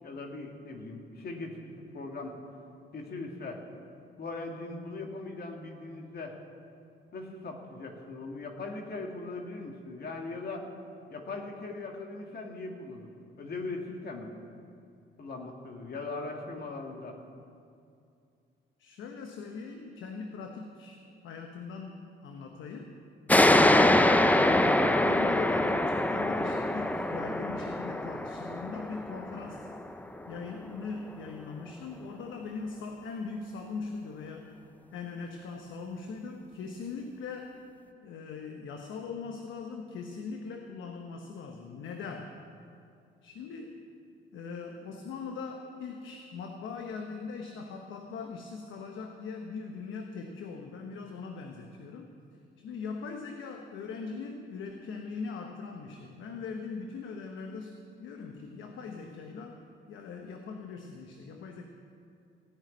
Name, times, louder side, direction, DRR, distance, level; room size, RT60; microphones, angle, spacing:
voice 1, 0.0-2.4 2.9-3.6 4.2-6.4 7.1-10.7 11.1-13.1 13.4-14.3 15.2-17.2, left 3 dB, 50° left, 2 dB, 1.8 m, -39 dB
voice 2, 18.8-22.9 23.4-29.7 30.3-34.6 34.9-37.5 38.0-42.3 43.2-43.8 44.3-52.1 52.6-59.6 59.9-61.7, left 4 dB, 80° left, 3 dB, 1.0 m, -40 dB
sound 1, 23.3-30.5, left 1 dB, 10° left, 0.6 m, -24 dB
16.0 x 6.1 x 9.4 m, 2.5 s
cardioid pair, 90°, 20 cm